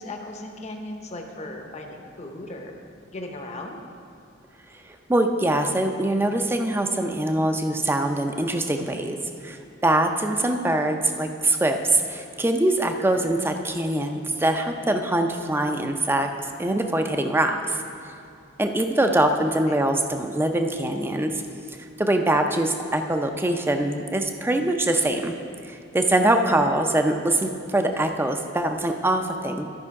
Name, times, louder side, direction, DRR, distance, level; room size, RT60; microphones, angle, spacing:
voice 1, 0.0-2.7 3.1-3.8 19.7-19.8, left 2 dB, 35° left, 3 dB, 0.8 m, -37 dB
voice 2, 5.1-9.2 9.4-16.3 16.6-17.8 18.6-21.4 21.8-25.3 25.7-29.6, right 1 dB, 10° right, 5 dB, 0.5 m, -23 dB
12.5 x 5.4 x 4.7 m, 2.5 s
head